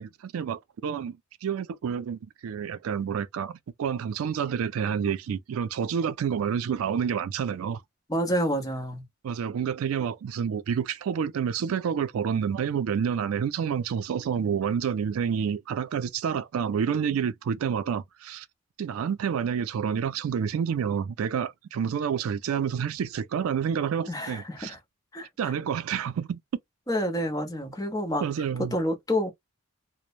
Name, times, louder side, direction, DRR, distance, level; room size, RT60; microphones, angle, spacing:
voice 1, 0.0-7.8 9.2-18.5 18.8-24.7 25.4-26.4 28.2-28.8, right 7 dB, 75° right, 0.3 m, -29 dB
voice 2, 8.1-9.0 24.1-24.8 25.1-25.5 26.9-28.3 28.7-29.3, equal, 15° left, 0.8 m, -28 dB
3.1 x 2.0 x 2.4 m
head